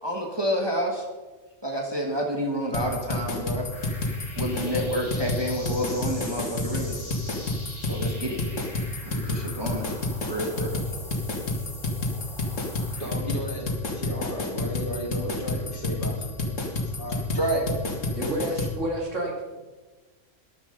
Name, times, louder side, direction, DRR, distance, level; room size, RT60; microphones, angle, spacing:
voice 1, 0.0-1.1 1.6-3.7 4.4-7.0 7.8-8.4 9.0-9.9 10.3-10.9 17.3-17.9, equal, 20° right, 0 dB, 1.8 m, -29 dB
sound 1, 2.7-18.7, left 2 dB, 75° left, 2.5 m, -29 dB
sound 2, 3.7-13.1, left 1 dB, 20° left, 2.5 m, -43 dB
voice 2, 12.5-13.6 13.9-17.3, equal, 40° left, -1 dB, 3.3 m, -36 dB
voice 3, 18.1-19.6, right 1 dB, 70° right, 0 dB, 3.1 m, -30 dB
13.0 x 11.0 x 5.3 m, 1.2 s
omnidirectional pair, 1.3 m